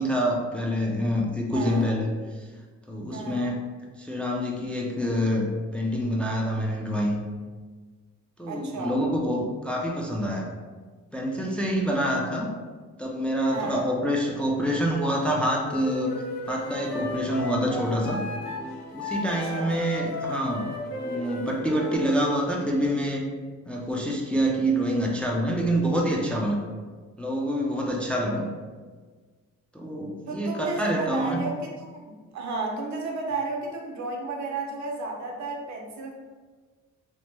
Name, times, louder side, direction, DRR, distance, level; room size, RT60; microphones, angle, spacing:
voice 1, 0.0-2.5 2.9-3.7 4.0-5.5 5.7-7.2 8.4-10.5 11.1-12.5 13.0-16.1 16.5-18.2 18.9-20.7 21.0-23.3 23.7-26.6 27.2-28.5 29.7-31.4, equal, 5° left, -1 dB, 0.4 m, -26 dB
voice 2, 1.5-1.9 3.1-3.5 8.5-9.0 13.5-13.8 19.2-19.8 30.3-36.1, right 3 dB, 65° right, 1 dB, 0.7 m, -33 dB
Wind instrument woodwind instrument, 15.7-22.2, left 2 dB, 75° left, 0.8 m, -35 dB
sound 1, 16.3-17.5 17.9-23.0, equal, 35° left, 0.8 m, -43 dB
2.9 x 2.1 x 3.2 m, 1.4 s
cardioid pair, 90°, 30 cm